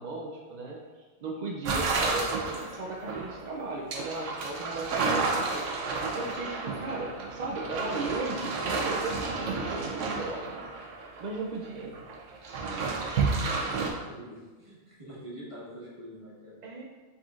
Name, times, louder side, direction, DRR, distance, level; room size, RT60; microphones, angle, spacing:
voice 1, 0.0-10.6 11.2-11.9 16.6-16.8, right 3 dB, 60° right, -2 dB, 0.4 m, -36 dB
sound 1, 1.7-11.4 11.6-13.9, right 4 dB, 80° right, 1.0 m, -31 dB
voice 2, 13.7-16.6, equal, 25° right, -7 dB, 1.3 m, -45 dB
5.2 x 4.1 x 2.4 m, 1.3 s
omnidirectional pair, 1.3 m